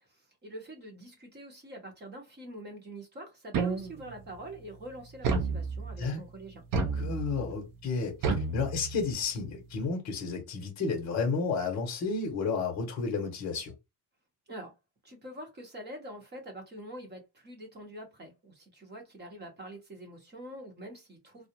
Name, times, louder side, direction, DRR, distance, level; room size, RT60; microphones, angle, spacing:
voice 1, 0.1-6.6 14.5-14.7 15.0-21.5, right 1 dB, 25° right, 0.9 m, -45 dB
sound 1, 3.5-4.2 5.2-6.1 6.7-7.5 8.2-9.2, right 4 dB, 50° right, 0.6 m, -31 dB
voice 2, 6.9-13.7, left 4 dB, 40° left, 0.8 m, -32 dB
2.4 x 2.1 x 2.8 m
cardioid pair, 135°, 42 cm